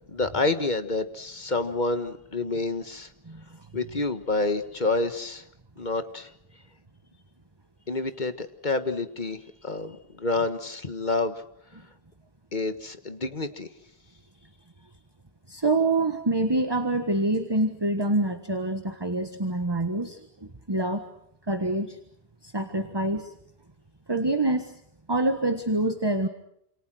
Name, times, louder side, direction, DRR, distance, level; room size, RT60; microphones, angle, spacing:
voice 1, 0.1-3.1 3.7-5.4 5.8-6.3 7.9-9.4 9.6-11.3 12.5-13.7, left 3 dB, 50° left, 10 dB, 1.6 m, -28 dB
voice 2, 15.5-21.1 21.5-22.0 22.4-23.3 24.1-24.7 25.1-26.3, right 2 dB, 25° right, 8 dB, 1.5 m, -26 dB
28.5 x 28.0 x 6.3 m, 0.72 s
omnidirectional pair, 1.0 m